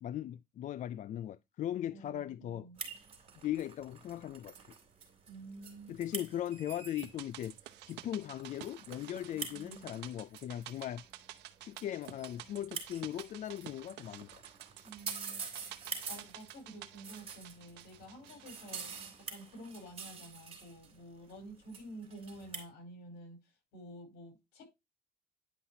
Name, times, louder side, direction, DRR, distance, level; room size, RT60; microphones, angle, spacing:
voice 1, 0.0-2.7 3.4-4.5 5.9-7.5 7.9-11.0 11.6-14.4, left 11 dB, 50° left, 0.4 m, -39 dB
voice 2, 1.9-2.8 5.3-6.0 9.3-9.9 14.8-18.9 19.3-23.4 23.7-24.7, right 1 dB, 80° left, 4.7 m, -50 dB
sound 1, 2.8-22.7, right 5 dB, 35° right, 3.5 m, -47 dB
sound 2, 7.0-19.4 19.7-19.8, right 14 dB, 85° right, 0.8 m, -51 dB
10.0 x 5.6 x 2.7 m
cardioid pair, 110°, 17 cm